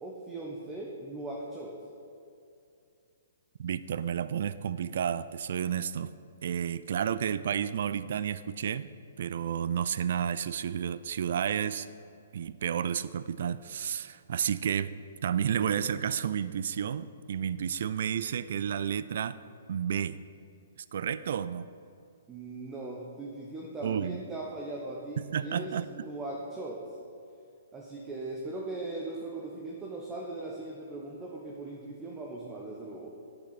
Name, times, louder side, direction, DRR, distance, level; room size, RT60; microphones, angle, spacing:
voice 1, 0.0-1.8 22.3-26.8 27.7-33.1, right 2 dB, 15° right, -1 dB, 1.1 m, -39 dB
voice 2, 3.6-6.1 6.4-8.9 9.2-11.9 12.3-14.9 15.2-19.4 19.7-20.2 20.9-21.7 23.8-24.2 25.2-25.9, right 8 dB, 55° right, 15 dB, 0.3 m, -31 dB
10.0 x 8.6 x 4.1 m, 2.5 s
figure-of-eight pair, 120°, 0 cm